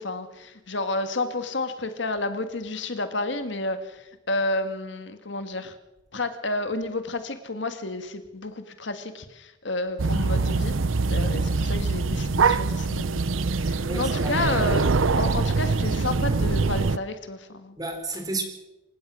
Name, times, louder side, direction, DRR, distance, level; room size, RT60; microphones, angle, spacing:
voice 1, 0.0-5.8 6.1-10.7 11.1-13.3 13.6-17.8, left 2 dB, 60° left, 1.9 m, -31 dB
sound 1, 10.0-17.0, right 4 dB, 80° right, 0.7 m, -24 dB
voice 2, 13.9-14.4 17.8-18.4, right 2 dB, 20° right, 4.3 m, -31 dB
27.0 x 16.5 x 6.3 m
head